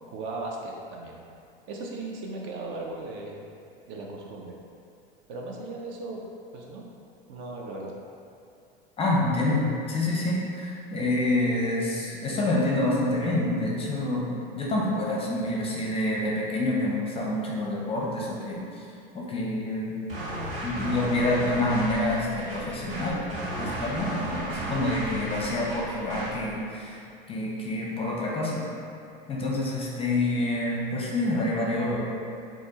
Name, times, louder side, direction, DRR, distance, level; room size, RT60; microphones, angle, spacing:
voice 1, 0.1-1.2 1.7-3.4 3.9-4.5 5.3-6.2 6.5-6.9 7.3-7.9, right 2 dB, 40° right, -1 dB, 0.5 m, -37 dB
voice 2, 9.0-14.3 14.5-18.8 19.1-19.9 20.6-27.0 27.3-28.6 29.3-32.0, left 1 dB, 20° left, -3 dB, 0.7 m, -27 dB
sound 1, 20.1-26.4, right 1 dB, 70° right, 1.0 m, -34 dB
4.2 x 2.4 x 2.9 m, 2.5 s
hypercardioid pair, 85°, 29 cm